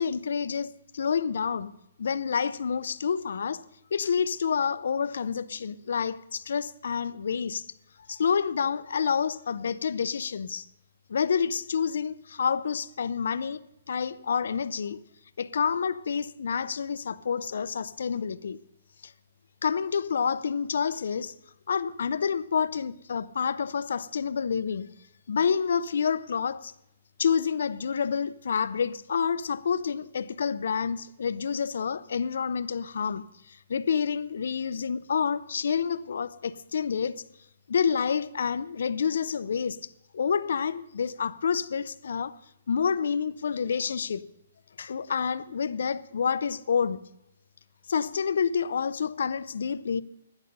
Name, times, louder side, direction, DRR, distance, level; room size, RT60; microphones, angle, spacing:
voice 1, 0.0-1.7 2.0-3.6 3.9-7.7 8.1-10.7 11.1-15.0 15.4-18.6 19.0-19.1 19.6-21.3 21.7-24.9 25.3-26.7 27.2-37.2 37.7-39.8 40.1-42.3 42.7-44.2 44.8-47.1 47.9-50.0, left 6 dB, 75° left, 0.7 m, -28 dB
12.0 x 11.0 x 5.4 m
hypercardioid pair, 160°, 0 cm